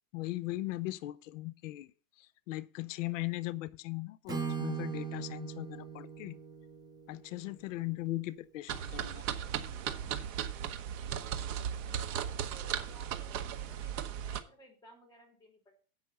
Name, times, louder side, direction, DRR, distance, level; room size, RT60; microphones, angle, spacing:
voice 1, 0.1-1.9 2.5-6.4 7.1-9.2, left 18 dB, 55° left, 0.7 m, -38 dB
Acoustic guitar / Strum, 4.3-8.2, right 6 dB, 10° right, 0.7 m, -40 dB
sound 1, 8.7-14.4, right 9 dB, 50° right, 1.1 m, -37 dB
voice 2, 11.2-15.8, equal, 10° left, 2.8 m, -58 dB
8.2 x 5.6 x 7.6 m
supercardioid pair, 145°, 47 cm